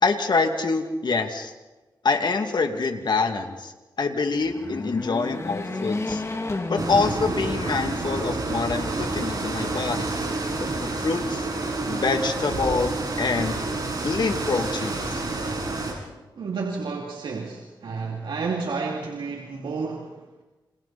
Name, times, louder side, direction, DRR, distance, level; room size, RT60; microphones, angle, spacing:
voice 1, 0.0-1.5 2.0-6.2 6.7-10.1 10.6-11.5 11.9-12.9 13.2-13.6 14.0-15.2, left 4 dB, 65° left, 5 dB, 2.5 m, -25 dB
sound 1, 4.3-7.9 8.4-8.5 9.5-10.3, left 2 dB, 35° left, 2.7 m, -32 dB
sound 2, 6.8-15.9, right 2 dB, 55° right, 7.6 m, -29 dB
voice 2, 16.4-20.4, right 4 dB, 85° right, 0 dB, 2.6 m, -31 dB
29.0 x 26.5 x 4.4 m, 1.1 s
cardioid pair, 70°, 8 cm